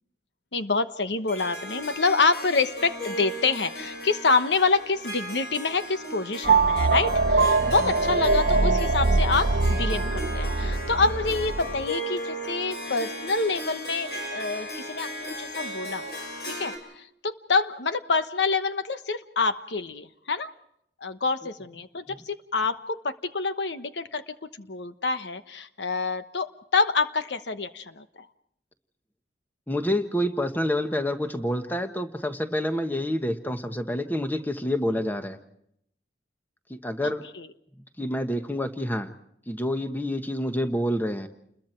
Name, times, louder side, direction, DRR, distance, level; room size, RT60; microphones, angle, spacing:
voice 1, 0.5-15.1 15.4-16.0 16.5-20.5 21.0-28.0 37.0-37.5, left 4 dB, 85° left, 10 dB, 1.1 m, -27 dB
Harp, 1.3-16.8, equal, 65° left, 6.1 m, -36 dB
sound 1, 6.4-11.9, right 3 dB, 55° right, 0.8 m, -23 dB
voice 2, 29.7-35.4 36.7-37.3 38.0-39.1 39.5-41.3, left 1 dB, 10° left, 7 dB, 1.3 m, -28 dB
29.5 x 21.5 x 4.5 m, 0.72 s
head